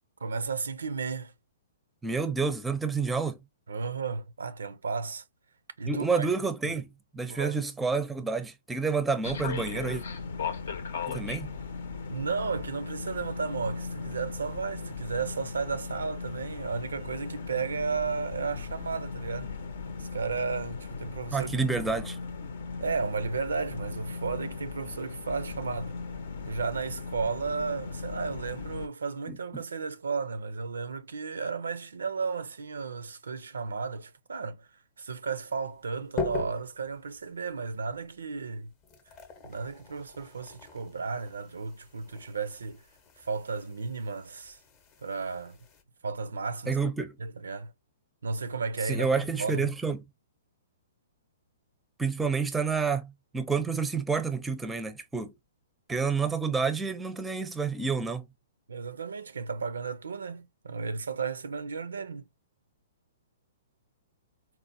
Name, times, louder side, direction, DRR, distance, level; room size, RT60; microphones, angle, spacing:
voice 1, 0.2-1.3 3.7-5.2 5.8-6.3 7.3-7.6 12.1-19.6 20.0-21.5 22.8-26.0 26.5-34.7 35.0-38.7 39.4-42.8 43.2-44.6 45.0-45.6 46.0-46.8 47.2-47.7 48.2-49.7 58.7-62.3, right 5 dB, 85° right, 0.4 m, -34 dB
voice 2, 2.0-3.4 5.9-10.0 11.1-11.5 21.3-22.2 29.3-29.6 46.7-47.2 48.9-50.0 52.0-55.3 55.9-58.3, right 5 dB, 5° right, 0.5 m, -29 dB
sound 1, 9.2-28.9, left 5 dB, 70° left, 0.7 m, -38 dB
sound 2, 35.5-45.8, left 4 dB, 30° left, 0.7 m, -42 dB
4.0 x 2.1 x 2.5 m
hypercardioid pair, 130°, 0 cm